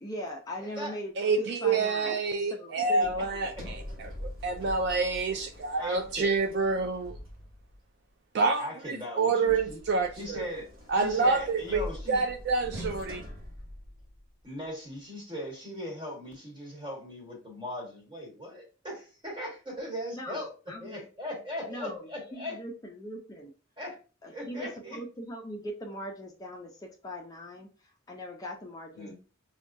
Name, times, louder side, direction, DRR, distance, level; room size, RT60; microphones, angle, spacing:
voice 1, 0.0-1.1 1.4-2.1 2.5-3.5 20.1-21.0 21.7-23.5 24.2-29.1, equal, 20° left, 0.4 m, -40 dB
voice 2, 0.6-0.9 2.0-2.2 2.8-2.9 3.2-3.3 3.6-3.7 5.8-6.3 8.6-9.8 10.1-10.7 10.9-12.2 14.4-20.5 20.8-22.6 23.8-24.0 24.3-25.0 28.9-29.1, left 1 dB, 25° right, 1.4 m, -39 dB
voice 3, 1.2-3.5 4.2-7.2 8.3-10.5 10.9-11.8 12.1-13.2, right 4 dB, 55° right, 0.3 m, -27 dB
Sliding door, 3.0-7.9 9.5-14.4, left 1 dB, 80° right, 1.0 m, -43 dB
4.8 x 2.2 x 2.5 m
head